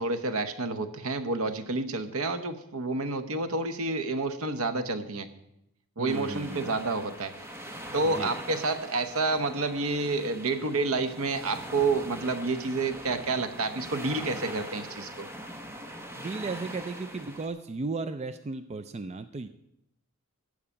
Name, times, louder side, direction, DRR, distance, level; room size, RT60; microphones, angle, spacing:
voice 1, 0.0-5.3 6.0-7.7 7.9-15.3, right 3 dB, 70° right, 9 dB, 0.9 m, -29 dB
voice 2, 6.0-6.8 8.0-8.3 16.2-19.5, right 3 dB, 30° right, 10 dB, 0.4 m, -35 dB
sound 1, 6.1-17.5, equal, 10° right, 1.1 m, -42 dB
14.0 x 4.8 x 8.8 m, 0.82 s
head